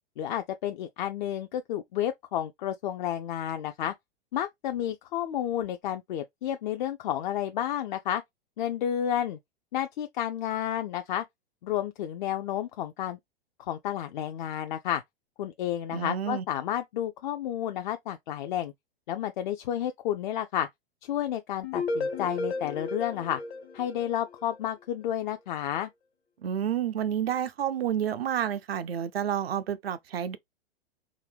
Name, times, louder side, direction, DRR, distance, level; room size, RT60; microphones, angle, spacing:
voice 1, 0.2-3.9 4.3-8.2 8.6-9.4 9.7-11.2 11.6-13.2 13.6-15.0 15.4-18.7 19.1-20.7 21.0-23.4 23.7-25.9, left 11 dB, 50° left, 0.4 m, -31 dB
voice 2, 15.9-16.4 26.4-30.4, right 9 dB, 75° right, 0.5 m, -29 dB
sound 1, 21.6-24.6, left 3 dB, 75° left, 1.3 m, -33 dB
3.7 x 2.2 x 3.3 m
figure-of-eight pair, 100°, 31 cm